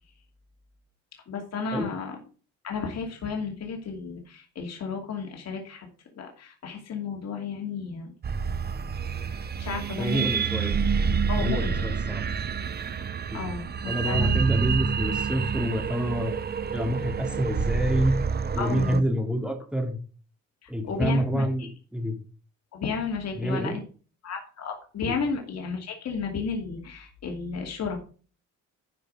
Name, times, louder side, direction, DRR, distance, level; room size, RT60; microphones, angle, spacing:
voice 1, 1.3-2.2 2.6-5.9 6.1-8.1 9.2-10.3 10.6-10.7 11.3-11.8 13.3-14.4 18.6-19.0 20.6-21.7 22.7-23.8 24.2-28.0, left 5 dB, 60° left, 2 dB, 2.5 m, -33 dB
sound 1, 8.2-19.0, right 6 dB, 35° right, 0.7 m, -28 dB
voice 2, 10.0-10.7 11.4-12.2 13.3-13.4 13.9-16.3 16.7-18.1 18.5-20.0 20.7-22.1 23.4-23.8 25.1-25.2, equal, 5° right, 4 dB, 2.7 m, -27 dB
12.0 x 5.0 x 5.0 m, 0.38 s
cardioid pair, 90°, 30 cm